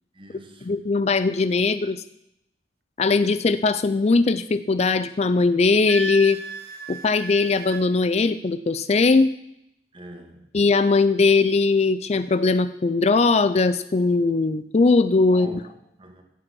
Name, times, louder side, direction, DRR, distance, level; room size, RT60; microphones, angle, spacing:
voice 1, 0.1-0.7 9.9-10.5 15.3-16.2, right 1 dB, 30° right, 4 dB, 1.8 m, -44 dB
voice 2, 0.7-2.0 3.0-6.4 6.9-9.3 10.5-15.6, left 3 dB, 35° left, 13 dB, 0.4 m, -20 dB
Wind instrument woodwind instrument, 5.9-7.9, right 3 dB, 55° right, 0.9 m, -34 dB
16.0 x 7.6 x 6.2 m, 0.80 s
head